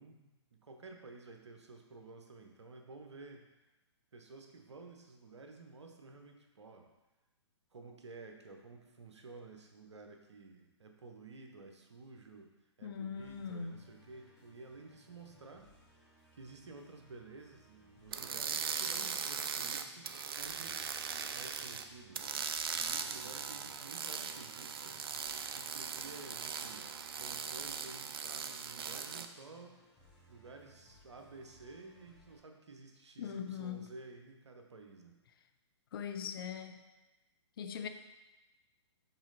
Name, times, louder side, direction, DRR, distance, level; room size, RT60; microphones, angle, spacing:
voice 1, 0.0-3.5 4.1-6.9 7.7-12.5 12.8-15.7 16.3-22.5 22.7-24.9 25.5-26.9 27.1-29.8 30.3-35.2, right 3 dB, 70° right, 3 dB, 0.9 m, -53 dB
voice 2, 12.8-13.8 33.2-33.9 35.9-36.8 37.6-37.9, left 7 dB, 50° left, 7 dB, 0.6 m, -41 dB
Musical instrument, 13.2-32.4, left 1 dB, ahead, 2.1 m, -65 dB
sound 1, 18.1-21.8 22.1-29.3, right 6 dB, 55° right, 0.5 m, -39 dB
6.0 x 4.1 x 4.0 m, 1.1 s
figure-of-eight pair, 120°, 15 cm